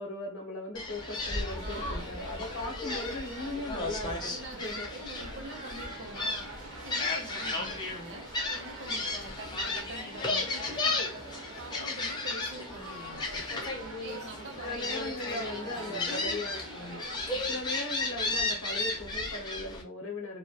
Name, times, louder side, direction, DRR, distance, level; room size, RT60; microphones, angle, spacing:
voice 1, 0.0-4.9 14.6-17.1 17.5-20.4, left 2 dB, 60° left, 1 dB, 0.7 m, -38 dB
Gull seagull, 0.7-19.8, left 2 dB, 20° left, 0.4 m, -34 dB
sound 1, 0.9-17.4, right 3 dB, 85° right, 0.8 m, -46 dB
voice 2, 1.6-2.1 4.2-6.5 6.8-11.2 11.6-13.4 14.0-16.2 17.3-17.6, right 2 dB, 50° right, 3 dB, 0.6 m, -46 dB
2.2 x 2.0 x 2.7 m, 0.34 s
head